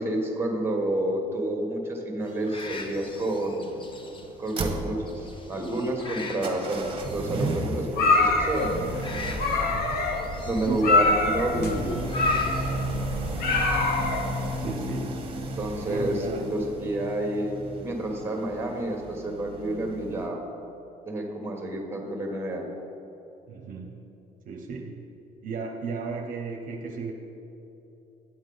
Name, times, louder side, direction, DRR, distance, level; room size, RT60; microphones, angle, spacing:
voice 1, 0.0-3.7 4.4-8.7 10.4-12.0 15.6-17.6 17.8-20.4 21.0-22.7, right 1 dB, 15° right, 2 dB, 1.3 m, -29 dB
sound 1, 2.2-14.5, left 3 dB, 30° left, 0.9 m, -44 dB
sound 2, 2.4-20.3, right 2 dB, 30° right, 1.1 m, -35 dB
sound 3, 7.9-14.6, left 3 dB, 65° left, 1.0 m, -25 dB
voice 2, 9.7-10.1 10.6-11.0 14.6-15.3 15.9-16.4 23.5-24.0 24.5-25.0 25.4-27.1, right 4 dB, 55° right, 2 dB, 0.7 m, -35 dB
9.3 x 7.2 x 3.9 m, 2.9 s
cardioid pair, 110°, 17 cm